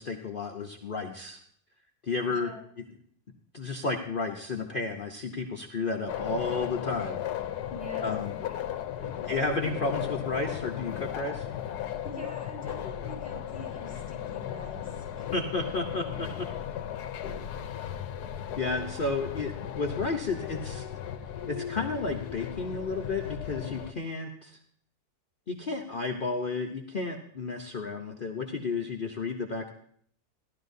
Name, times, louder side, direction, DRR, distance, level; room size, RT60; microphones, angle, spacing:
voice 1, 0.0-1.4 2.0-2.5 3.5-7.2 8.0-8.3 9.3-11.5 15.3-16.5 18.6-20.9 21.5-24.6 25.5-29.7, left 3 dB, 45° left, 1 dB, 0.8 m, -32 dB
voice 2, 2.3-2.6 7.7-8.1 8.5-8.6 12.0-15.4 15.7-16.1 17.2-17.6, left 1 dB, 5° right, -2 dB, 5.4 m, -44 dB
sound 1, 6.1-23.9, left 10 dB, 90° left, 1.2 m, -36 dB
16.0 x 12.0 x 2.7 m, 0.62 s
omnidirectional pair, 1.7 m